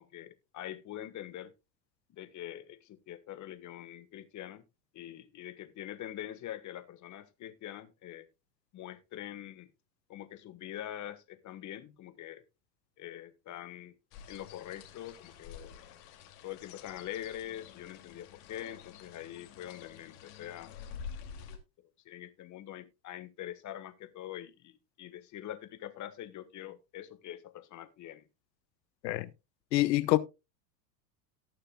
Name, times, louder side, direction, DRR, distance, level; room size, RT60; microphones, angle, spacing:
voice 1, 0.0-1.5 2.1-4.6 4.9-8.3 8.7-9.7 10.1-12.4 13.0-13.9 14.3-15.8 16.4-20.7 22.0-28.2, left 12 dB, 35° left, 1.4 m, -44 dB
sound 1, 14.1-21.6, left 7 dB, 55° left, 2.7 m, -49 dB
voice 2, 29.7-30.2, left 17 dB, 80° left, 1.0 m, -26 dB
18.5 x 6.6 x 2.3 m
hypercardioid pair, 110°, 50 cm